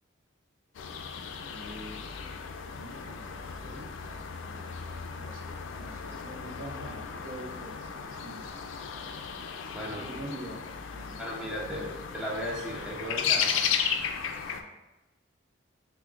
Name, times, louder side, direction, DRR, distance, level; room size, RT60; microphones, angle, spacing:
sound 1, 0.7-14.6, left 7 dB, 70° left, 0.3 m, -35 dB
voice 1, 1.5-2.1 2.6-8.5 8.8-9.2 9.9-10.7 10.9-11.2 11.6-11.9, right 1 dB, 80° right, -1 dB, 0.7 m, -46 dB
voice 2, 9.7-10.1 11.2-13.7, equal, 5° right, -4 dB, 0.5 m, -36 dB
5.8 x 2.1 x 2.4 m, 1.0 s
head